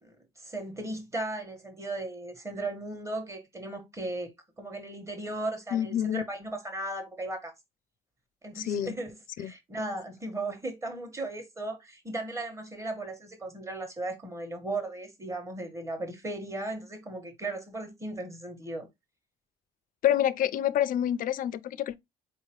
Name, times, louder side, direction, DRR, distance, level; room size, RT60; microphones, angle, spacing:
voice 1, 0.0-4.3 4.6-7.5 8.4-18.9, right 2 dB, 15° right, 1.3 m, -36 dB
voice 2, 5.7-6.2 8.6-8.9 9.4-9.5 20.0-22.0, left 10 dB, 55° left, 0.4 m, -27 dB
4.3 x 2.8 x 2.9 m
cardioid pair, 110°, 17 cm